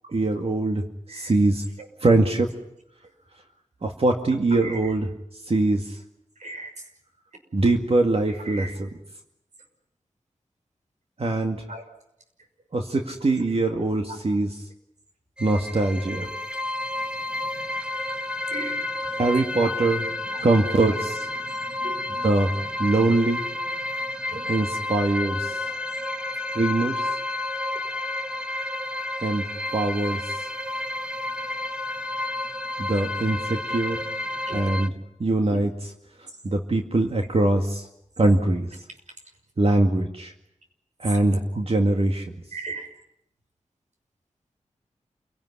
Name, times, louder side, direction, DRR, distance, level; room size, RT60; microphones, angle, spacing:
voice 1, 0.1-1.6 2.0-2.5 3.8-6.0 7.5-8.9 11.2-11.6 12.7-14.5 15.4-16.3 19.2-20.0 20.4-21.3 22.2-22.5 22.8-23.4 24.5-25.6 26.5-27.1 29.2-29.5 29.7-30.5 32.8-34.0 34.5-34.9 35.2-35.9 36.2-37.9 38.2-38.8 39.6-40.3 41.0-42.3, right 2 dB, 50° right, 3 dB, 2.2 m, -23 dB
voice 2, 4.5-4.9 6.4-6.8 8.3-8.8 11.7-11.8 18.5-18.8 21.8-22.0 24.3-24.5 26.5-26.6 34.4-34.7 42.5-42.9, right 2 dB, 75° right, 5 dB, 6.1 m, -37 dB
sound 1, 15.4-34.9, left 2 dB, 10° right, 1.6 m, -31 dB
28.0 x 18.0 x 9.8 m, 0.82 s
wide cardioid pair, 60°, 12 cm